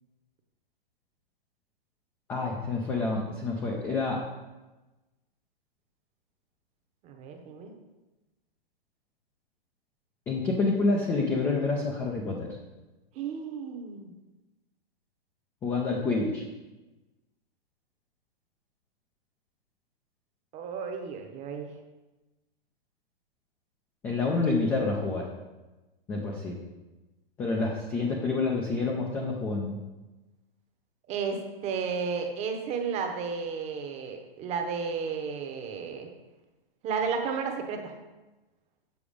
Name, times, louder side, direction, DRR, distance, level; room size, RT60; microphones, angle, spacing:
voice 1, 2.3-4.2 10.3-12.5 15.6-16.4 24.0-25.2 26.1-26.6 27.4-29.8, left 3 dB, 10° left, -1 dB, 0.3 m, -28 dB
voice 2, 7.0-7.7 13.1-14.1 20.5-21.7 31.1-36.1 36.8-37.9, right 5 dB, 20° right, 4 dB, 0.8 m, -33 dB
7.1 x 4.8 x 5.0 m, 1.1 s
hypercardioid pair, 135°, 30 cm